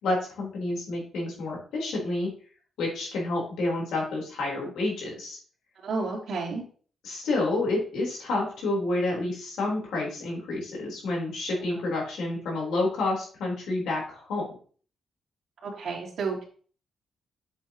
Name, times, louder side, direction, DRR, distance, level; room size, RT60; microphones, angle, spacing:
voice 1, 0.0-2.3 2.8-5.4 7.0-14.4, left 2 dB, 90° left, -2 dB, 4.1 m, -29 dB
voice 2, 5.8-6.6 11.5-11.6 15.6-16.4, right 4 dB, 70° right, -10 dB, 3.0 m, -31 dB
8.6 x 7.3 x 3.0 m, 0.43 s
cardioid pair, 110°, 0 cm